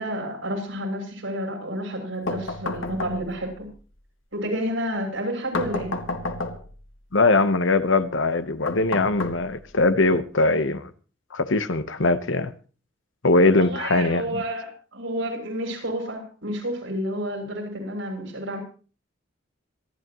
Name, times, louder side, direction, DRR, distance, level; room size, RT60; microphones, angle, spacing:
voice 1, 0.0-3.7 4.3-6.0 13.5-18.6, equal, 80° right, 7.2 m, -30 dB
sound 1, 2.3-3.5 5.5-6.8 8.7-9.8, left 2 dB, 90° left, 1.9 m, -31 dB
voice 2, 7.1-10.9 11.3-12.5 13.2-14.4, left 2 dB, 70° left, 1.1 m, -21 dB
26.0 x 11.5 x 3.1 m
head